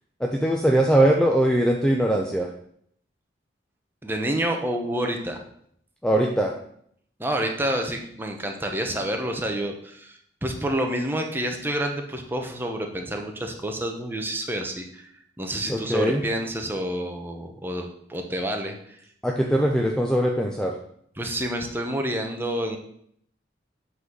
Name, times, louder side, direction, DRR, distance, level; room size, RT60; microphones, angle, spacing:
voice 1, 0.2-2.5 6.0-6.5 15.7-16.2 19.2-20.7, right 1 dB, 5° left, 1 dB, 0.6 m, -21 dB
voice 2, 4.0-5.4 7.2-15.1 15.4-19.0 21.2-22.8, right 1 dB, 10° right, 3 dB, 0.9 m, -28 dB
8.2 x 4.1 x 6.2 m, 0.68 s
head